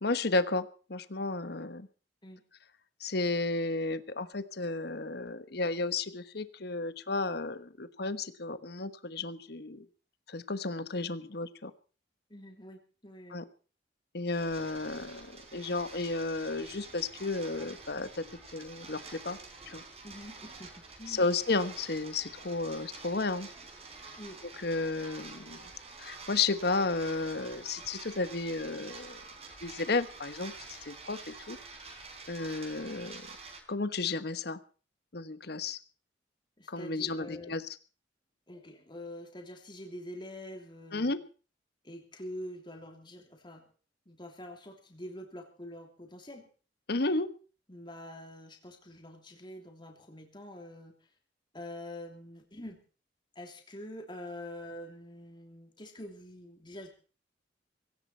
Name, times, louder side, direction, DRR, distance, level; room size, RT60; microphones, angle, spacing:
voice 1, 0.0-1.9 3.0-9.9 10.3-11.7 13.3-13.4 14.1-18.2 18.5-19.4 19.7-19.8 21.1-23.5 24.6-25.7 26.0-29.2 29.6-30.5 30.8-31.6 32.3-33.3 33.7-34.6 35.1-35.8 36.7-37.6 40.9-41.2 46.9-47.3, left 3 dB, 60° left, 12 dB, 1.1 m, -33 dB
voice 2, 12.3-13.4 20.0-21.3 24.2-24.4 36.6-37.5 38.5-41.1 41.8-43.7 44.1-46.5 47.7-51.0 51.5-52.8 53.3-56.9, left 1 dB, 25° left, 3 dB, 3.1 m, -45 dB
sound 1, 14.3-33.6, right 4 dB, 35° right, 3.9 m, -48 dB
18.0 x 17.0 x 4.5 m, 0.38 s
head